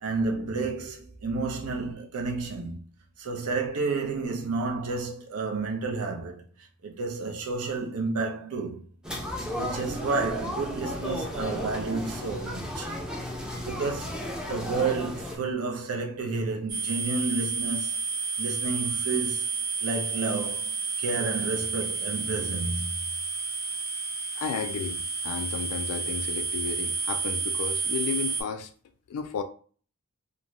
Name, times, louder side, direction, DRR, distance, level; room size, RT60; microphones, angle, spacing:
voice 1, 0.0-2.9 3.2-6.5 6.8-8.8 9.5-12.9 13.5-18.0 18.4-19.5 19.8-22.9, right 3 dB, 70° right, 0.6 m, -31 dB
sound 1, 9.0-15.4, left 1 dB, 5° right, 0.4 m, -34 dB
sound 2, 16.7-28.4, right 4 dB, 40° right, 0.9 m, -31 dB
voice 2, 24.3-28.7 29.1-29.4, left 6 dB, 70° left, 0.3 m, -33 dB
2.5 x 2.2 x 3.0 m
head